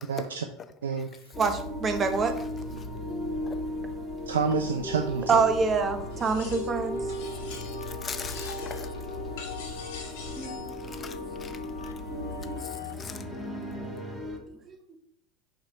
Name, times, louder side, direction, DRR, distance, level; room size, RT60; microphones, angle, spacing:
voice 1, 0.1-0.5 0.8-1.3 4.3-5.4, right 6 dB, 85° right, 0.4 m, -29 dB
sound 1, 1.3-14.4, left 1 dB, ahead, 1.9 m, -36 dB
voice 2, 1.4-2.4 5.3-7.0 14.5-14.8, right 4 dB, 30° right, 0.9 m, -25 dB
sound 2, 4.9-12.9, left 8 dB, 90° left, 0.5 m, -44 dB
sound 3, 6.1-6.8 7.1-7.9 8.2-8.9 9.4-10.7, left 5 dB, 70° left, 1.6 m, -45 dB
voice 3, 7.9-8.9 10.9-11.5 13.0-13.2, left 6 dB, 30° left, 0.6 m, -39 dB
5.7 x 3.3 x 5.4 m
hypercardioid pair, 80°, 0 cm